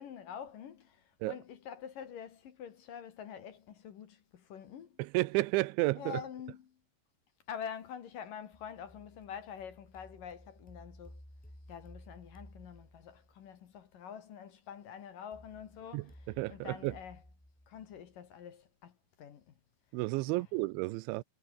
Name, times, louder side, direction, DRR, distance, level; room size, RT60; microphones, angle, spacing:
voice 1, 0.0-5.0 6.0-6.7 7.5-11.2 11.7-17.2 17.7-19.5 20.3-20.4, left 8 dB, 55° left, 3.0 m, -46 dB
voice 2, 5.0-6.2 15.9-17.0 19.9-21.2, right 21 dB, 90° right, 3.0 m, -32 dB
sound 1, 8.5-13.5 15.3-18.3, equal, 5° left, 1.0 m, -56 dB
omnidirectional pair, 5.3 m